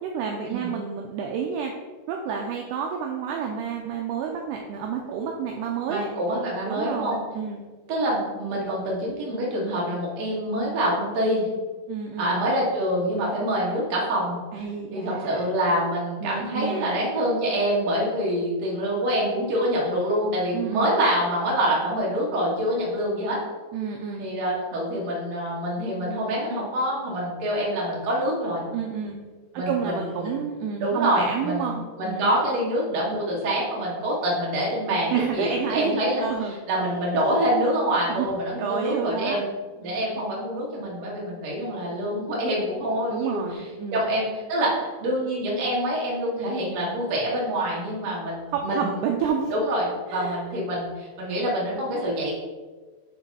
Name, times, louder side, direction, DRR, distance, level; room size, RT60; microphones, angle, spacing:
voice 1, 0.0-1.7 2.1-6.1 6.7-7.6 11.9-12.4 14.5-15.5 16.2-17.0 20.5-21.0 23.7-24.2 28.7-29.2 29.5-32.3 35.1-36.6 36.8-37.0 37.2-37.4 38.1-38.3 38.6-39.4 39.8-40.1 43.1-44.1 48.5-49.5 50.1-50.4, right 7 dB, 80° right, 1 dB, 2.5 m, -30 dB
voice 2, 5.9-7.2 7.9-11.5 12.2-14.6 14.9-23.4 24.2-28.6 29.5-30.4 30.8-39.5 39.8-43.6 43.9-49.0 49.5-52.3, equal, 50° right, -4 dB, 2.4 m, -26 dB
8.9 x 3.4 x 5.5 m, 1.4 s
omnidirectional pair, 5.1 m